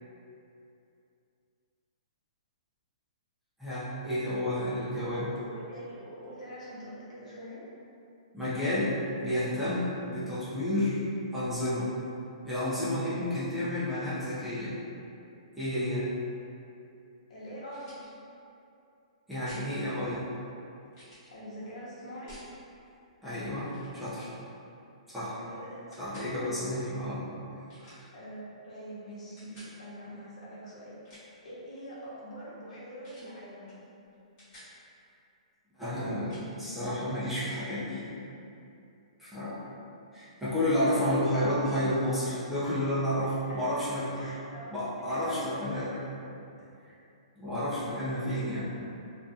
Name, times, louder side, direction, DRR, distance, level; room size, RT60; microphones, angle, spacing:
voice 1, 3.6-5.3 8.3-11.0 11.3-11.9 12.4-14.7 15.6-16.1 19.3-20.3 23.2-24.3 25.1-25.3 26.0-27.3 27.5-28.1 35.8-38.1 39.2-39.6 40.1-44.3 44.7-45.9 47.4-48.6, left 1 dB, 5° right, -12 dB, 0.4 m, -31 dB
voice 2, 5.0-7.6 12.9-13.2 17.3-17.9 21.3-22.3 25.2-25.8 28.1-30.9 31.4-33.8 43.5-43.8 44.1-44.7 45.1-46.0, equal, 75° left, -8 dB, 0.9 m, -44 dB
sound 1, 17.7-18.1 19.5-19.7 20.9-21.3 22.3-22.5 23.6-23.9 24.2-24.4 25.9-26.3 27.7-28.1 29.4-29.7 30.9-31.4 33.0-33.3 33.7-33.8 34.1-34.7 36.3-36.5, equal, 25° left, 1.0 m, -53 dB
2.6 x 2.3 x 2.4 m, 2.7 s
hypercardioid pair, 165°, 4 cm